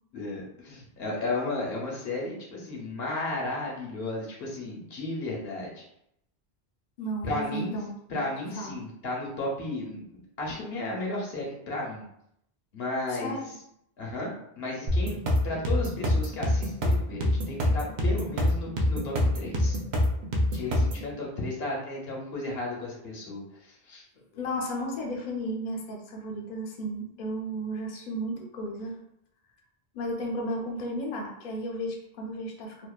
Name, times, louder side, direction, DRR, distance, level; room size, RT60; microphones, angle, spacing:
voice 1, 0.1-5.8 7.2-7.8 8.1-12.0 12.7-13.4 14.0-19.8 20.5-24.0, left 2 dB, 75° left, -3 dB, 1.0 m, -34 dB
voice 2, 7.0-8.2 8.6-8.8 13.1-13.5 20.6-20.7 24.3-29.0 29.9-32.9, equal, 55° left, 0 dB, 0.6 m, -34 dB
sound 1, 14.9-21.1, left 1 dB, 55° right, 0.6 m, -25 dB
2.7 x 2.1 x 2.3 m, 0.75 s
omnidirectional pair, 1.0 m